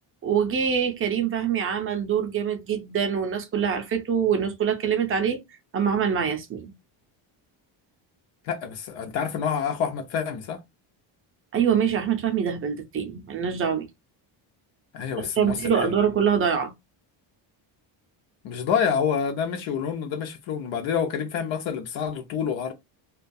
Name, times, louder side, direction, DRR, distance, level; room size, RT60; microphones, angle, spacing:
voice 1, 0.2-5.4 5.7-6.7 11.5-13.9 15.2-16.7, right 7 dB, 30° right, 0.4 m, -24 dB
voice 2, 8.4-10.6 14.9-15.9 18.4-22.7, left 7 dB, 70° left, 0.6 m, -27 dB
2.2 x 2.2 x 2.5 m
cardioid pair, 170°, 48 cm